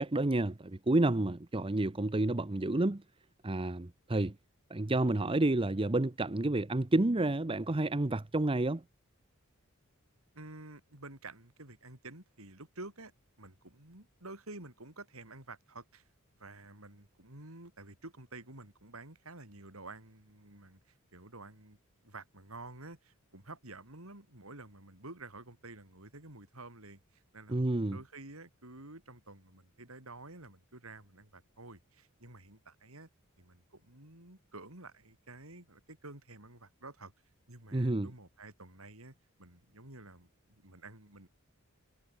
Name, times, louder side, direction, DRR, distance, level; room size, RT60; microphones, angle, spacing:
voice 1, 0.0-3.0 3.4-4.3 4.7-8.8 27.5-28.0 37.7-38.1, right 2 dB, 25° right, 0.8 m, -30 dB
voice 2, 10.3-13.1 13.4-16.0 16.4-20.8 21.1-21.8 22.0-33.1 33.4-37.1 37.5-41.3, right 2 dB, 70° right, 5.7 m, -50 dB
head